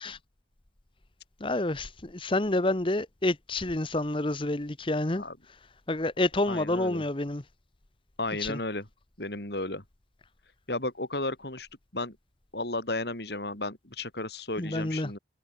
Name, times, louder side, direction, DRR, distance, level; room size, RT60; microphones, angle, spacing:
voice 1, 1.4-5.2 5.9-7.4 8.4-8.6 14.6-15.1, left 2 dB, 30° left, 1.0 m, -28 dB
voice 2, 6.5-7.0 8.2-8.9 9.2-9.8 10.7-11.7 11.9-12.2 12.5-15.2, left 2 dB, 60° left, 4.0 m, -33 dB
head